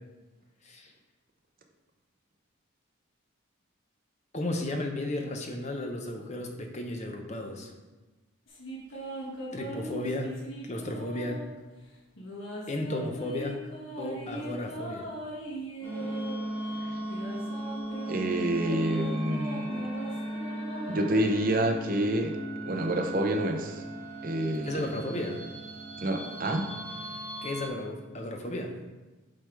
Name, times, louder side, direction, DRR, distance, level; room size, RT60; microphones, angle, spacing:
voice 1, 4.3-7.7 9.5-10.3 10.6-11.4 12.7-13.6 14.0-15.1 24.6-25.4 27.4-28.7, left 1 dB, 30° left, 3 dB, 0.7 m, -34 dB
sound 1, 8.5-11.6 12.2-16.4 17.0-21.7, right 1 dB, 60° left, 1.6 m, -40 dB
sound 2, 15.8-27.7, right 1 dB, 10° right, 2.1 m, -36 dB
voice 2, 18.1-19.9 20.9-22.4 22.6-23.8 24.2-24.9 26.0-26.7, right 1 dB, 40° right, 3 dB, 0.7 m, -28 dB
7.5 x 3.5 x 4.7 m, 1.2 s
head